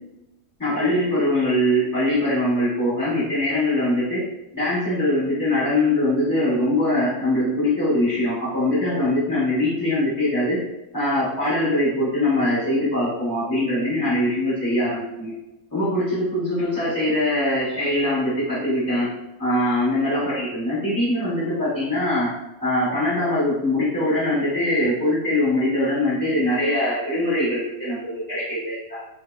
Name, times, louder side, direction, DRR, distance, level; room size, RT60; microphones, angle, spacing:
voice 1, 0.6-4.2 4.5-10.6 10.9-15.3 15.7-19.1 19.4-22.3 22.6-29.0, left 1 dB, 25° left, -13 dB, 0.4 m, -22 dB
3.3 x 2.0 x 2.2 m, 0.95 s
omnidirectional pair, 2.3 m